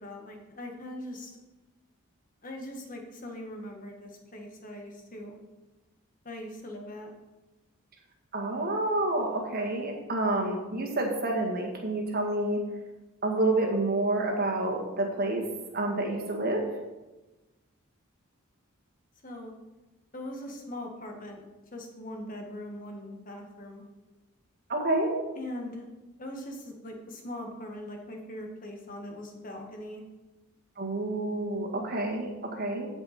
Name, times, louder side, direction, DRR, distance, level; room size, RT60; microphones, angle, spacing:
voice 1, 0.0-1.4 2.4-5.4 6.2-7.1 19.2-19.5 20.1-21.4 21.7-23.8 25.4-25.9 26.2-30.0, left 1 dB, 40° left, 2 dB, 1.5 m, -41 dB
voice 2, 8.3-12.6 13.2-15.4 15.7-16.6 24.7-25.1 30.8-32.9, right 2 dB, 45° right, 1 dB, 1.9 m, -28 dB
15.0 x 5.4 x 4.3 m, 1.1 s
head